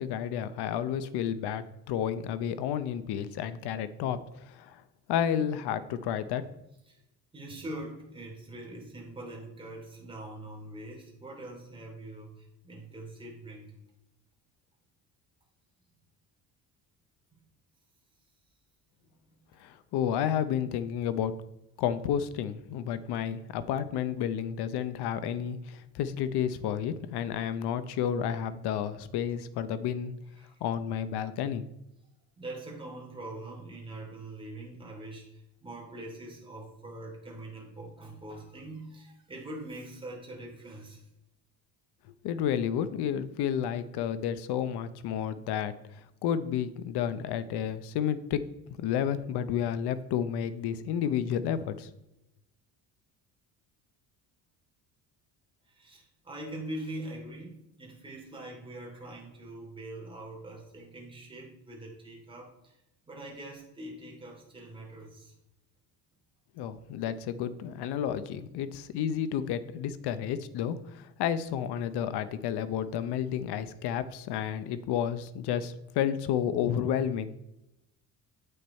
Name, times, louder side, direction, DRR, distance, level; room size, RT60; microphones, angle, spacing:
voice 1, 0.0-4.8 5.1-6.5 19.6-21.3 21.8-30.1 30.6-31.7 42.2-48.4 48.8-51.9 66.6-77.4, left 9 dB, 70° left, 13 dB, 0.8 m, -31 dB
voice 2, 7.3-13.7 30.4-30.6 32.4-41.0 55.7-57.5 57.8-62.8 63.1-65.3, right 1 dB, 15° right, -2 dB, 3.0 m, -43 dB
8.6 x 6.7 x 4.3 m, 0.88 s
cardioid pair, 140°, 40 cm